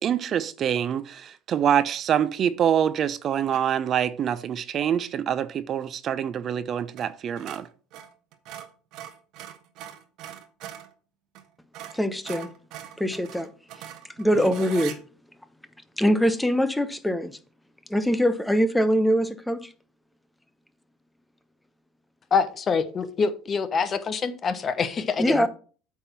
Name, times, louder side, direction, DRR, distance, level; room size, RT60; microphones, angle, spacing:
voice 1, 0.0-7.7, right 9 dB, 45° right, 0.5 m, -25 dB
sound 1, 3.5-3.8 6.9-7.1 7.4-10.9 11.3-11.5 11.7-15.0, right 10 dB, 65° right, 1.2 m, -41 dB
voice 2, 11.9-12.5 13.0-13.5 14.2-15.0 16.0-17.4 17.9-19.7 25.2-25.5, equal, 5° left, 0.8 m, -23 dB
voice 3, 22.3-25.5, left 5 dB, 35° left, 1.0 m, -25 dB
8.6 x 3.6 x 5.9 m
supercardioid pair, 90°, 0 cm